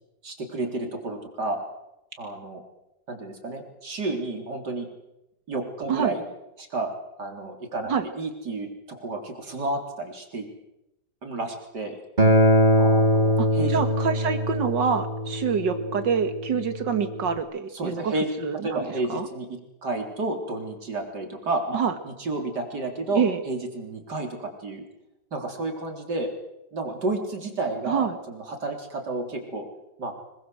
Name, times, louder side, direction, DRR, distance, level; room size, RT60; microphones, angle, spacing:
voice 1, 0.2-1.6 2.2-2.6 3.1-4.9 5.5-6.2 6.6-6.9 7.2-10.5 11.2-12.0 12.8-13.8 17.7-18.3 18.6-24.8 25.3-26.3 26.7-29.7 30.0-30.1, right 2 dB, 65° right, 3 dB, 4.4 m, -31 dB
Acoustic guitar, 12.2-17.4, equal, 25° right, 3.7 m, -22 dB
voice 2, 13.4-18.1 18.4-19.3 21.7-21.9 23.1-23.4 27.9-28.2, right 6 dB, 80° right, 9 dB, 2.3 m, -26 dB
27.0 x 21.0 x 7.8 m, 0.91 s
omnidirectional pair, 1.9 m